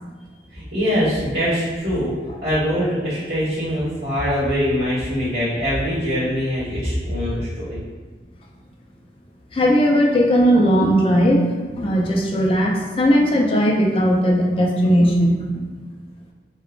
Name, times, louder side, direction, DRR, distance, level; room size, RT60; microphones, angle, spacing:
voice 1, 0.5-2.1 2.4-7.8, equal, 85° right, -15 dB, 1.2 m, -23 dB
voice 2, 9.5-15.6, equal, 30° left, -1 dB, 0.3 m, -17 dB
2.9 x 2.0 x 2.4 m, 1.3 s
head